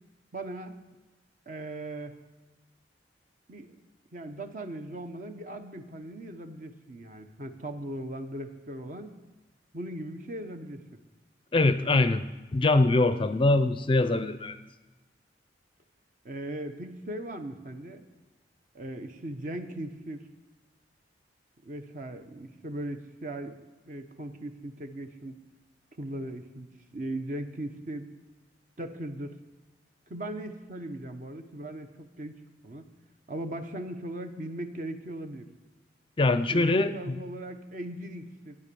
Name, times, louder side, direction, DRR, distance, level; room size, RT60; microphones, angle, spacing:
voice 1, 0.3-0.7 1.5-2.2 3.5-3.7 4.1-9.1 9.7-11.0 16.2-18.0 18.7-20.3 21.6-23.6 23.9-25.4 26.0-26.7 26.9-28.1 28.8-29.4 30.1-32.9 33.3-35.5 36.5-38.6, right 1 dB, 45° right, 7 dB, 1.0 m, -38 dB
voice 2, 11.5-12.3 12.5-14.6 36.2-37.1, left 2 dB, 30° left, 12 dB, 0.5 m, -23 dB
13.0 x 9.6 x 6.9 m, 1.2 s
head